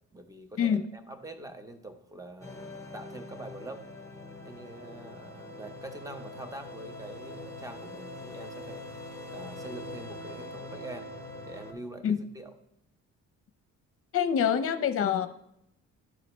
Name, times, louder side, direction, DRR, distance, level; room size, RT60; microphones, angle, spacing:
voice 1, 0.1-3.8 4.4-8.8 9.3-11.1 11.4-12.5, right 2 dB, 10° right, 7 dB, 0.8 m, -44 dB
sound 1, 2.4-11.7, left 2 dB, 10° left, 1.0 m, -43 dB
voice 2, 14.1-15.3, left 8 dB, 50° left, 10 dB, 0.6 m, -25 dB
11.0 x 4.1 x 3.1 m, 0.78 s
cardioid pair, 90°, 30 cm